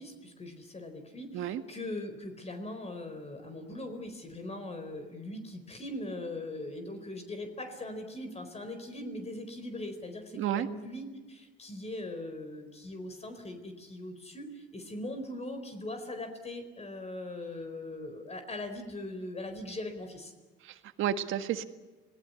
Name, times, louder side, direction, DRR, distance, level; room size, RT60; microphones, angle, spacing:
voice 1, 0.0-20.3, left 1 dB, 30° left, 6 dB, 4.4 m, -40 dB
voice 2, 10.3-10.7 20.6-21.6, right 10 dB, 85° right, 9 dB, 1.7 m, -31 dB
26.5 x 18.0 x 9.7 m, 1.2 s
cardioid pair, 90°, 20 cm